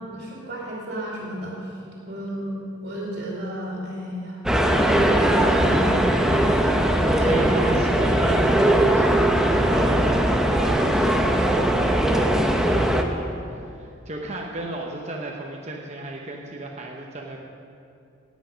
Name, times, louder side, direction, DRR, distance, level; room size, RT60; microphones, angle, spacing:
voice 1, 0.0-1.5 2.1-2.5 2.8-4.4 4.7-6.4 7.2-7.5, right 1 dB, 55° right, -4 dB, 2.3 m, -32 dB
sound 1, 4.5-13.0, right 1 dB, 5° right, 0.7 m, -20 dB
voice 2, 6.3-17.4, right 1 dB, 35° right, 0 dB, 0.9 m, -35 dB
18.0 x 8.3 x 5.2 m, 2.6 s
head